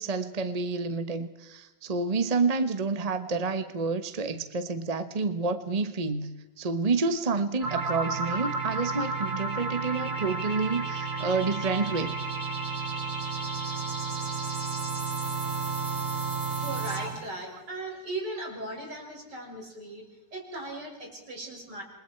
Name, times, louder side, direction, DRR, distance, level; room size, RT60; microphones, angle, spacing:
voice 1, 0.0-6.3 6.6-12.1, right 4 dB, 25° right, 10 dB, 1.1 m, -29 dB
sound 1, 7.6-17.3, right 4 dB, 50° right, 6.1 m, -32 dB
voice 2, 16.5-20.0 20.3-21.8, right 2 dB, 85° right, 0 dB, 7.0 m, -38 dB
28.5 x 23.5 x 4.5 m, 0.99 s
omnidirectional pair, 1.8 m